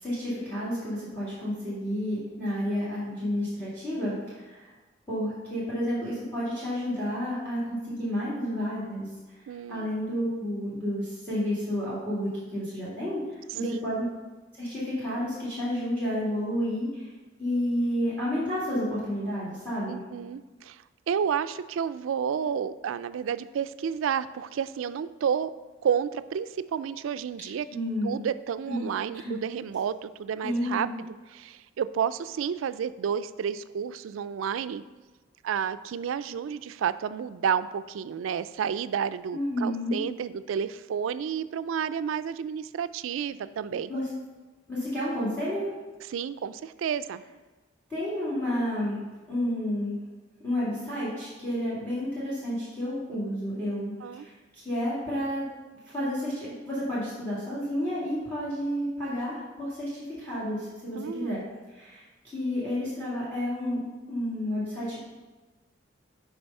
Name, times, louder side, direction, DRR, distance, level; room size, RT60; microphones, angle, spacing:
voice 1, 0.0-4.7 5.1-14.1 14.5-17.1 17.4-20.0 27.7-28.1 28.7-28.9 29.1-29.3 30.4-30.9 39.3-40.0 43.9-44.1 44.7-45.7 47.9-49.0 49.3-50.0 50.4-55.5 55.9-61.4 61.7-62.0 62.3-65.0, equal, 10° left, -9 dB, 2.3 m, -31 dB
voice 2, 9.5-9.9 13.6-13.9 19.9-25.5 25.8-27.7 28.0-34.8 35.4-43.9 46.1-47.2 54.0-54.3 60.9-61.4, right 7 dB, 85° right, 14 dB, 0.3 m, -31 dB
6.8 x 4.8 x 5.4 m, 1.2 s
head